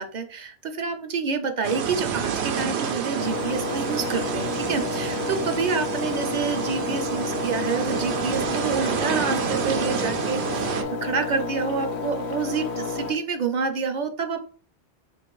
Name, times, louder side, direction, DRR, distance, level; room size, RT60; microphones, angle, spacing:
voice 1, 0.0-14.4, right 5 dB, 50° right, 6 dB, 0.7 m, -28 dB
sound 1, 1.6-10.8, right 7 dB, 85° right, 0.9 m, -29 dB
Engine, 3.2-13.1, left 4 dB, 90° left, 0.9 m, -31 dB
3.8 x 2.5 x 4.5 m, 0.41 s
omnidirectional pair, 1.1 m